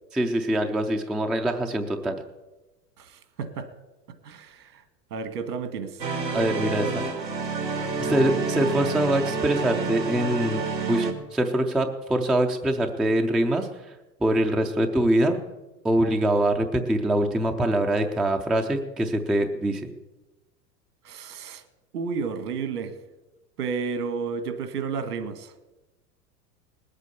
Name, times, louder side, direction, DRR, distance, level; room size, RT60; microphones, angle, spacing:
voice 1, 0.1-2.2 6.3-7.0 8.0-10.6 10.9-13.9 14.2-15.4 15.8-19.9, right 1 dB, ahead, 4 dB, 0.4 m, -24 dB
voice 2, 3.0-3.7 4.2-4.8 5.1-6.0 21.0-21.6 21.9-22.9 23.6-25.5, right 5 dB, 70° right, 9 dB, 2.0 m, -31 dB
sound 1, 6.0-11.1, right 4 dB, 90° right, 2.6 m, -28 dB
19.5 x 8.4 x 7.1 m, 1.1 s
figure-of-eight pair, 95°, 49 cm